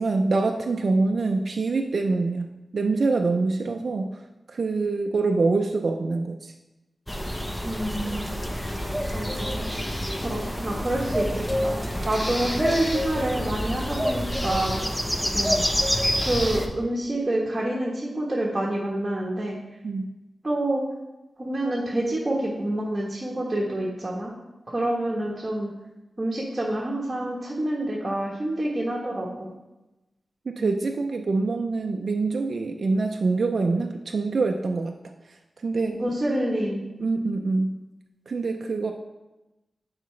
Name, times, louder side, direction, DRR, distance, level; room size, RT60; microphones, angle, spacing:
voice 1, 0.0-2.5 2.7-4.2 4.5-6.5 19.8-20.1 30.5-34.9 35.6-36.0 37.0-37.8 38.3-38.9, right 3 dB, 55° right, 3 dB, 0.4 m, -25 dB
sound 1, 7.1-16.7, equal, 10° left, 0.6 m, -27 dB
voice 2, 7.6-8.3 9.1-9.7 10.2-14.8 15.3-15.7 16.2-19.6 20.4-20.8 21.4-24.3 24.7-25.7 26.2-29.5 30.6-30.7 35.9-36.9, right 1 dB, 20° right, -3 dB, 1.1 m, -27 dB
10.5 x 4.7 x 3.2 m, 1.0 s
wide cardioid pair, 155°, 0 cm